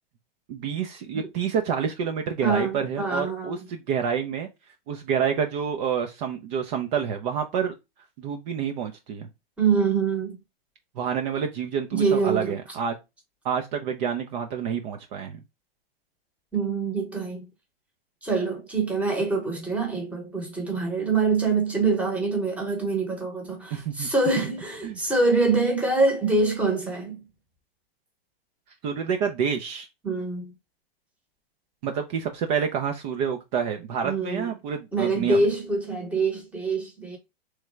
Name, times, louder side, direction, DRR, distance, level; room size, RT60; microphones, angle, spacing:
voice 1, 0.5-4.5 4.9-7.7 8.2-9.3 11.0-12.9 13.4-15.4 23.7-24.1 24.8-25.0 28.8-29.9 31.8-35.4, right 7 dB, 45° right, 0.6 m, -28 dB
voice 2, 2.4-3.6 9.6-10.4 11.9-12.6 16.5-17.4 18.2-27.2 30.0-30.5 34.0-34.5 34.9-37.2, right 3 dB, 5° right, 1.0 m, -25 dB
3.6 x 3.2 x 3.2 m
hypercardioid pair, 140°, 31 cm